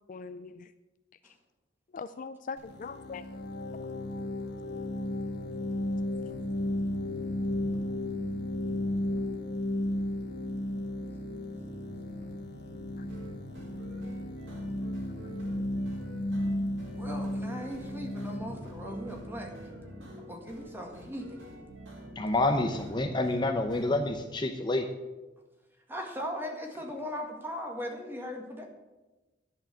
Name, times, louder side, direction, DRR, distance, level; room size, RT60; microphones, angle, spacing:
voice 1, 0.1-0.7 1.2-1.4 1.9-3.3 13.0-13.1, left 5 dB, 45° left, 11 dB, 0.4 m, -41 dB
sound 1, 2.6-20.2, left 1 dB, 60° left, 1.7 m, -34 dB
sound 2, 6.3-24.2, equal, 55° right, 2.5 m, -48 dB
sound 3, 12.9-23.9, right 1 dB, 85° right, 4.2 m, -50 dB
voice 2, 17.0-19.5 20.2-21.3 25.9-28.6, equal, 10° right, 2 dB, 1.8 m, -38 dB
voice 3, 22.2-24.9, left 2 dB, 25° left, 5 dB, 0.7 m, -28 dB
10.5 x 6.6 x 8.8 m, 1.1 s
head